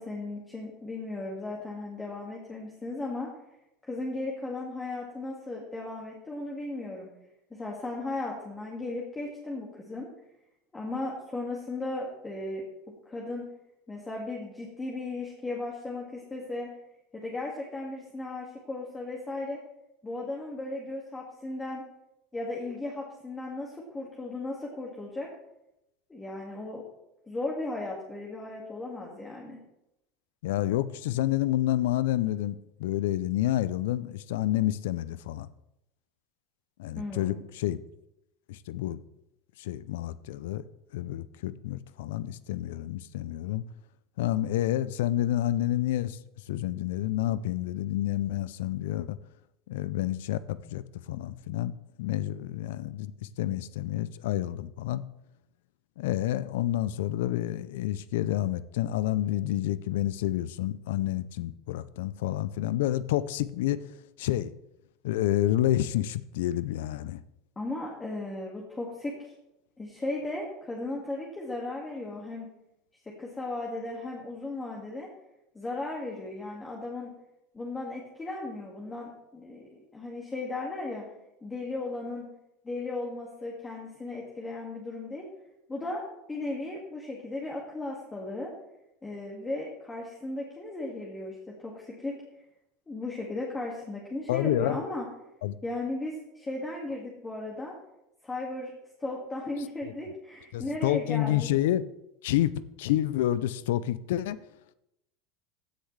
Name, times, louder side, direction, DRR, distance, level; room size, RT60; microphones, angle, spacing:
voice 1, 0.0-3.3 3.8-7.1 7.5-10.1 10.7-13.4 13.9-16.7 17.1-19.6 20.0-21.9 22.3-25.3 26.1-26.8 27.3-29.6 37.0-37.5 67.6-69.2 69.8-72.5 73.1-75.1 75.5-77.1 77.5-81.1 81.4-82.3 82.6-85.3 85.7-86.0 86.3-88.5 89.0-92.2 92.9-95.1 95.6-97.7 98.2-98.7 99.0-101.5, left 2 dB, 15° left, -3 dB, 2.0 m, -36 dB
voice 2, 30.4-35.5 36.8-37.8 38.5-39.0 39.6-40.6 40.9-43.6 44.2-46.2 46.5-49.2 49.7-51.7 52.0-53.1 53.4-55.0 56.0-63.8 64.2-64.5 65.0-67.2 94.3-94.8 95.4-95.6 99.8-99.9 100.5-101.8 102.2-102.5 102.8-104.4, left 13 dB, 80° left, 17 dB, 0.4 m, -29 dB
15.0 x 6.5 x 3.3 m, 0.87 s
supercardioid pair, 105°, 0 cm